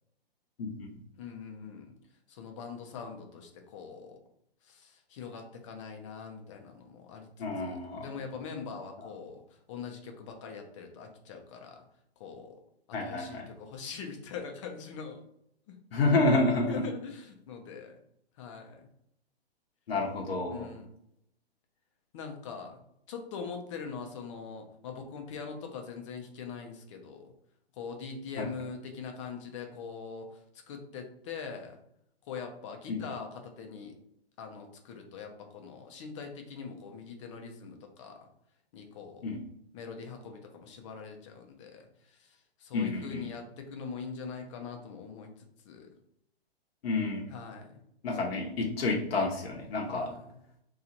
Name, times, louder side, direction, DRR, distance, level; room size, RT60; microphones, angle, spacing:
voice 1, 0.6-0.9 7.4-8.0 12.9-13.5 15.9-16.8 19.9-20.7 28.4-28.5 32.9-33.0 39.2-39.4 42.7-43.3 46.8-47.3 48.0-50.1, left 2 dB, 65° left, 0 dB, 0.9 m, -29 dB
voice 2, 1.2-2.0 2.3-4.2 4.6-9.4 9.7-11.8 12.2-12.6 12.9-15.2 15.7-15.8 16.7-18.0 18.4-18.9 20.5-20.9 22.1-22.8 23.1-27.3 27.8-31.8 32.2-33.9 34.4-38.2 38.7-39.3 39.7-45.9 47.3-47.8 49.9-50.4, left 5 dB, 30° left, 3 dB, 0.6 m, -42 dB
2.9 x 2.4 x 3.9 m, 0.74 s
hypercardioid pair, 135°, 32 cm